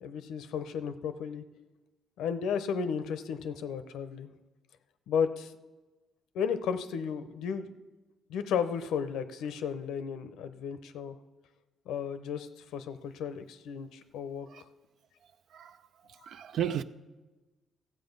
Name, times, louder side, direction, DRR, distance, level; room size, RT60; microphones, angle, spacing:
voice 1, 0.0-1.4 2.2-4.3 5.1-5.5 6.3-7.7 8.3-11.2 11.9-14.5, left 7 dB, 85° left, 0.7 m, -34 dB
voice 2, 16.1-16.8, right 10 dB, 70° right, 0.5 m, -34 dB
14.5 x 7.6 x 5.3 m
cardioid pair, 90°, 0 cm